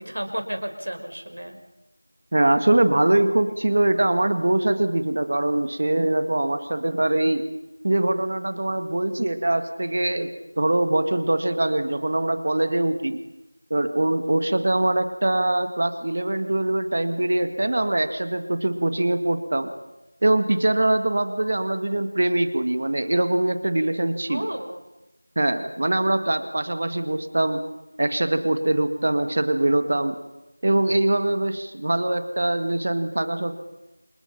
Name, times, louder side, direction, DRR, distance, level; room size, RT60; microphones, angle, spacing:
voice 1, 0.0-1.6 24.3-24.8, equal, 80° right, 6 dB, 5.8 m, -32 dB
voice 2, 2.3-7.4 7.8-10.3 10.6-13.2 13.7-19.7 20.2-24.5 25.4-27.6 28.0-30.2 30.6-33.5, right 1 dB, 30° right, 9 dB, 1.8 m, -23 dB
28.5 x 27.0 x 5.8 m, 0.95 s
figure-of-eight pair, 175°, 0 cm